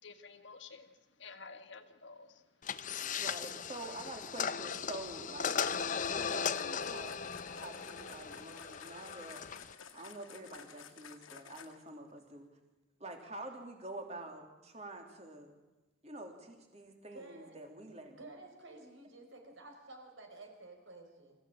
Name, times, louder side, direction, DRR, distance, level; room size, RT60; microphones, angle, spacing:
voice 1, 0.0-2.4, left 4 dB, 60° left, 7 dB, 1.7 m, -52 dB
sound 1, 2.6-9.7, left 6 dB, 40° left, 0.7 m, -37 dB
voice 2, 3.2-7.1 7.5-9.5 9.7-12.5 13.0-15.6 16.0-18.2, right 2 dB, 30° right, 3 dB, 3.2 m, -47 dB
sound 2, 5.7-12.0, left 7 dB, 80° left, 2.0 m, -53 dB
voice 3, 17.1-17.6 18.1-21.4, right 2 dB, 70° right, 4 dB, 5.0 m, -52 dB
26.0 x 15.5 x 8.9 m, 1.1 s
head